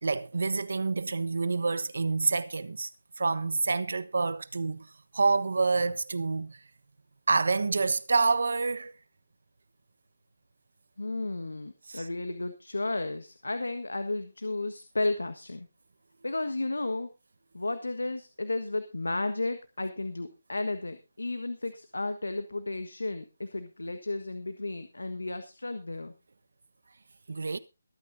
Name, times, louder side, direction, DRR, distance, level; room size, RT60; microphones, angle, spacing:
voice 1, 0.0-2.9 3.2-4.9 5.1-6.6 7.3-8.9 11.9-12.1 27.3-27.6, right 4 dB, 70° right, 1.1 m, -27 dB
voice 2, 11.0-15.7 16.2-17.1 17.5-26.1, left 2 dB, 90° left, 1.5 m, -33 dB
23.0 x 9.3 x 2.7 m
figure-of-eight pair, 155°, 0 cm